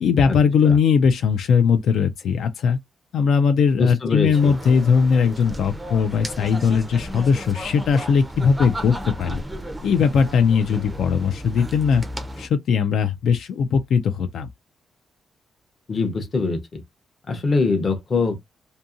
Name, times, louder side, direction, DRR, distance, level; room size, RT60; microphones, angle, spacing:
voice 1, 0.0-2.8 3.1-9.4 9.8-12.0 12.4-14.5, left 6 dB, 65° left, 0.3 m, -19 dB
voice 2, 3.8-4.5 15.9-16.8 17.3-18.3, left 4 dB, 30° left, 0.6 m, -23 dB
sound 1, 4.3-12.5, equal, 10° right, 0.4 m, -34 dB
2.7 x 2.6 x 2.4 m
cardioid pair, 160°, 0 cm